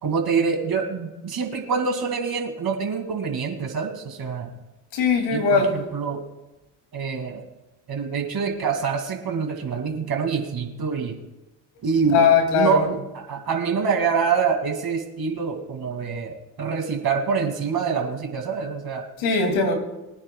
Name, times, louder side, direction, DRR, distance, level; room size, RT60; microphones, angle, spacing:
voice 1, 0.0-4.5 5.3-6.2 6.9-7.4 7.9-11.2 11.8-12.2 12.5-19.0, right 5 dB, 50° right, 2.4 m, -26 dB
voice 2, 4.9-5.8 12.1-12.8 19.2-19.7, left 5 dB, 80° left, 2.6 m, -19 dB
23.5 x 9.7 x 2.3 m
supercardioid pair, 65°, 47 cm